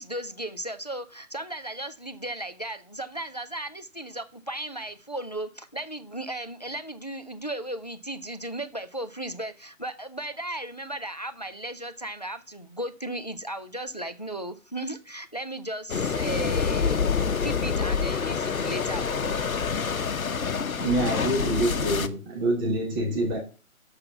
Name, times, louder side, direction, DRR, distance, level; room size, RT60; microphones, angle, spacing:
voice 1, 0.0-19.4, right 1 dB, 30° left, 0.4 m, -36 dB
sound 1, 15.9-22.1, left 6 dB, 70° left, 0.9 m, -27 dB
voice 2, 20.8-23.4, right 1 dB, 15° right, 1.4 m, -26 dB
6.8 x 5.6 x 6.8 m
figure-of-eight pair, 150°, 42 cm